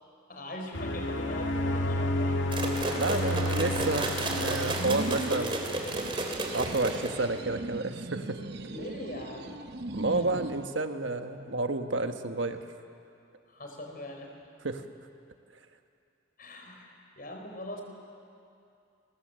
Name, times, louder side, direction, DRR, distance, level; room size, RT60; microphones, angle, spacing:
voice 1, 0.3-2.4 8.7-9.6 10.1-10.2 13.5-14.3 16.4-17.8, left 1 dB, 45° left, 2 dB, 4.5 m, -42 dB
sound 1, 0.7-5.8, left 1 dB, 75° left, 1.9 m, -31 dB
sound 2, 2.5-7.4, right 2 dB, 25° right, 3.0 m, -32 dB
voice 2, 2.9-5.6 6.5-8.4 9.9-12.6 14.6-14.8, right 2 dB, 75° right, 6 dB, 1.4 m, -30 dB
sound 3, 4.5-10.7, right 2 dB, 55° right, 0.9 m, -39 dB
29.5 x 22.0 x 7.7 m, 2.6 s
head